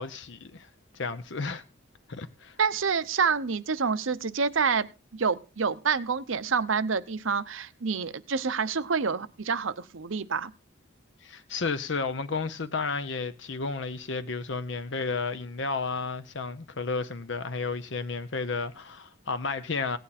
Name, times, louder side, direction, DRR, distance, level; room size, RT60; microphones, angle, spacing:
voice 1, 0.0-1.6 2.1-2.6 11.2-20.0, left 4 dB, 60° left, 0.7 m, -32 dB
voice 2, 2.6-4.9 5.1-10.5, right 5 dB, 70° right, 0.8 m, -27 dB
17.5 x 9.3 x 4.2 m
head